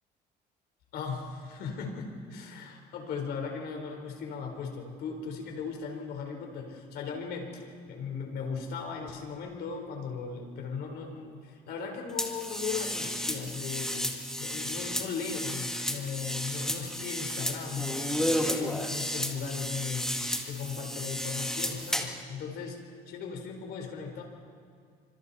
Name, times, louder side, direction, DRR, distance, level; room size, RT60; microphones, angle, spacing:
voice 1, 0.9-14.1 14.4-24.2, left 5 dB, 70° left, 2 dB, 4.4 m, -37 dB
sound 1, 12.2-22.2, equal, 5° left, 2.0 m, -33 dB
29.0 x 25.5 x 4.3 m, 2.1 s
cardioid pair, 110°, 17 cm